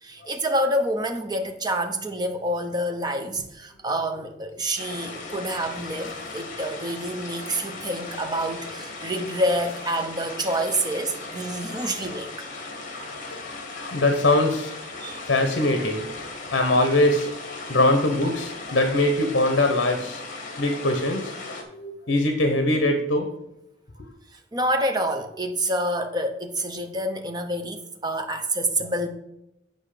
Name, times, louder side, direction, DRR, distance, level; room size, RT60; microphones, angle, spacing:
voice 1, 0.0-12.5 15.0-15.2 24.5-29.1, right 1 dB, 20° right, 6 dB, 0.8 m, -27 dB
sound 1, 4.8-21.6, left 3 dB, 45° left, 1.4 m, -37 dB
voice 2, 13.1-14.7 15.2-16.2 16.5-17.3 17.7-20.2 20.6-21.3 21.7-23.3, left 1 dB, 60° left, 6 dB, 0.9 m, -22 dB
8.0 x 5.4 x 5.0 m, 0.85 s
head